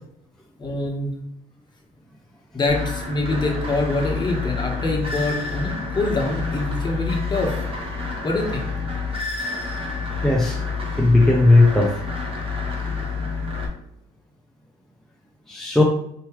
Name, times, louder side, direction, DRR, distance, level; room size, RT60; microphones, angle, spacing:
voice 1, 0.6-1.1 2.5-7.5 8.2-8.7, left 2 dB, 25° left, 0 dB, 1.2 m, -25 dB
sound 1, 2.7-13.7, left 4 dB, 35° right, 1.1 m, -28 dB
voice 2, 10.2-10.6 11.0-12.0 15.5-15.8, left 2 dB, ahead, -1 dB, 0.5 m, -16 dB
4.7 x 3.1 x 3.0 m, 0.75 s
cardioid pair, 110°, 17 cm